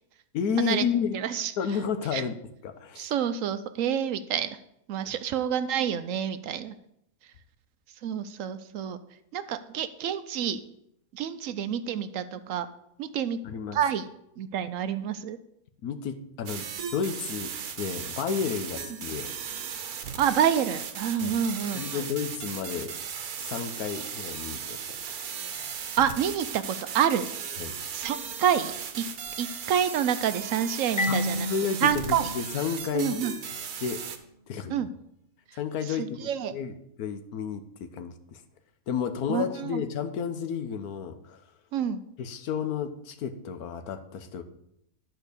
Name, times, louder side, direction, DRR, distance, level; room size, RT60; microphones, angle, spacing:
voice 1, 0.3-1.2 1.6-3.1 13.4-13.8 15.8-16.7 16.9-19.3 21.2-21.3 21.7-22.9 23.4-24.8 27.6-27.7 31.1-31.2 31.5-32.0 32.3-33.2 33.8-34.0 34.5-34.8 35.6-36.2 36.5-38.4 38.9-41.4 42.2-44.4, left 7 dB, 80° left, 9 dB, 1.3 m, -31 dB
voice 2, 1.1-1.5 2.1-2.2 3.0-4.5 4.9-6.7 8.0-9.0 9.3-10.6 11.1-12.7 13.0-13.4 13.7-14.1 14.4-15.4 20.2-22.1 26.0-26.6 26.9-27.2 27.9-29.0 29.4-31.5 31.8-32.3 32.9-33.3 34.7-34.9 35.9-36.5 39.3-39.8 41.7-42.0, right 9 dB, 70° right, 11 dB, 0.9 m, -28 dB
sound 1, 16.5-34.2, right 7 dB, 90° right, 1.3 m, -37 dB
Marimba xylophone, 31.0-33.6, left 2 dB, 60° left, 1.8 m, -32 dB
10.5 x 4.5 x 6.5 m, 0.77 s
omnidirectional pair, 1.5 m